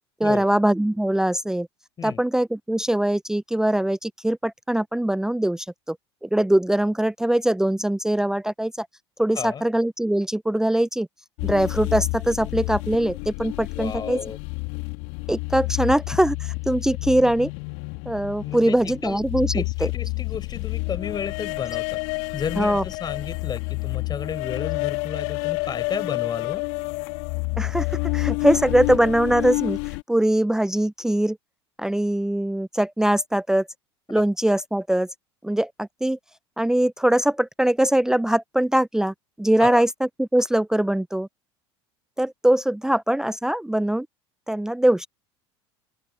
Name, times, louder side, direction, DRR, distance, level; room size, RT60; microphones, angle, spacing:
voice 1, 0.2-1.7 2.0-6.0 6.2-8.9 9.2-11.1 11.4-14.2 15.3-17.5 18.1-19.6 22.6-22.8 27.6-29.8 30.1-31.4 31.8-33.7 34.1-35.1 35.4-36.2 36.6-39.9 40.2-41.3 42.2-44.1 44.5-45.1, right 1 dB, 5° right, 0.7 m, -22 dB
sound 1, 11.4-30.0, left 35 dB, 55° left, 3.3 m, -29 dB
voice 2, 13.7-14.4 18.4-18.8 19.0-19.2 19.5-22.0 22.3-26.6 39.6-39.8, left 7 dB, 30° left, 5.1 m, -32 dB
open air
figure-of-eight pair, 70°, 14 cm